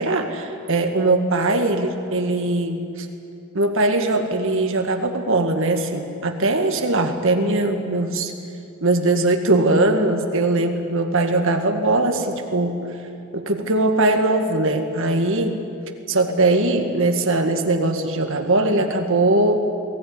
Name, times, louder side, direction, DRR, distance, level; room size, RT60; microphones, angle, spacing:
voice 1, 0.0-3.1 3.5-8.3 8.8-12.8 13.3-15.6 16.1-19.7, right 2 dB, 60° right, 5 dB, 2.1 m, -20 dB
21.5 x 18.0 x 9.8 m, 2.6 s
head